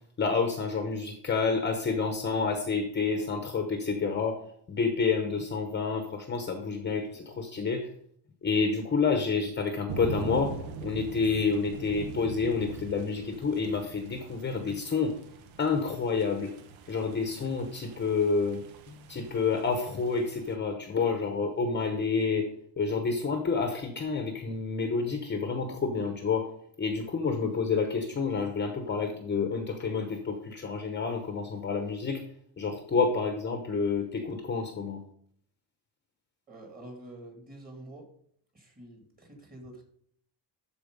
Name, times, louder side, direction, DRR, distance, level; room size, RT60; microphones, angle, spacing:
voice 1, 0.2-4.4 4.7-7.9 8.4-10.6 10.8-15.2 15.6-16.5 16.9-22.5 22.8-26.5 26.8-32.2 32.6-35.0, left 4 dB, 25° left, 5 dB, 0.9 m, -29 dB
sound 1, 9.9-20.5, right 5 dB, 85° right, 1.2 m, -43 dB
voice 2, 36.5-38.1 38.5-39.8, right 1 dB, 20° right, 2 dB, 2.2 m, -47 dB
12.5 x 4.4 x 5.2 m, 0.66 s
cardioid pair, 170°, 46 cm